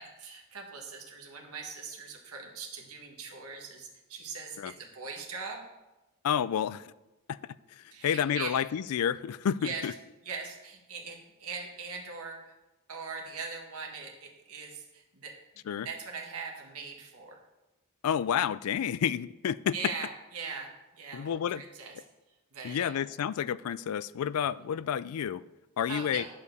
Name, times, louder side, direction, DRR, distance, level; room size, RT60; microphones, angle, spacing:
voice 1, 0.0-5.7 7.9-8.5 9.6-9.9 10.2-12.5 12.9-15.4 15.8-17.4 19.7-21.9 22.5-22.9 24.6-24.7 25.9-26.3, right 5 dB, 80° right, 1.6 m, -41 dB
voice 2, 6.2-6.9 7.3-7.4 7.8-9.9 15.7-15.9 18.0-19.7 21.1-21.6 22.6-25.4 25.8-26.2, left 8 dB, 75° left, 0.3 m, -30 dB
9.7 x 4.8 x 6.6 m
head